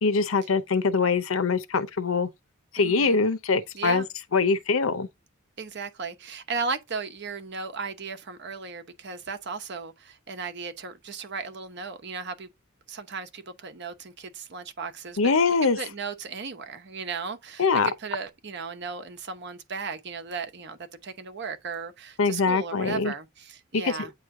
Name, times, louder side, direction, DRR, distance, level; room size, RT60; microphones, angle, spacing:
voice 1, 0.0-2.3 2.7-4.0 4.3-5.1 15.2-15.8 17.6-17.9 22.2-23.1 23.7-24.1, left 4 dB, 80° left, 0.7 m, -23 dB
voice 2, 2.8-3.2 3.7-4.1 5.6-12.5 12.9-15.3 15.8-24.1, right 5 dB, 55° right, 0.9 m, -36 dB
8.9 x 3.1 x 3.7 m
head